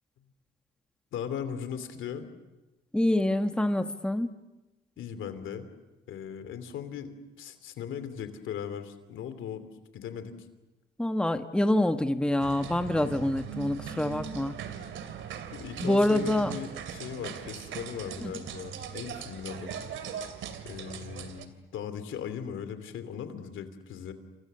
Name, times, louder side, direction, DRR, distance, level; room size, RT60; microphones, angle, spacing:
voice 1, 1.1-2.3 5.0-5.7 6.1-7.1 7.4-10.3 15.5-19.7 20.6-24.1, left 8 dB, 80° left, 10 dB, 2.9 m, -38 dB
voice 2, 2.9-4.3 11.0-14.6 15.8-16.5 18.2-18.4, left 1 dB, 5° left, 8 dB, 1.4 m, -26 dB
sound 1, 12.4-21.5, right 8 dB, 80° right, 2.7 m, -40 dB
29.0 x 26.5 x 6.9 m, 1.1 s
cardioid pair, 90°, 20 cm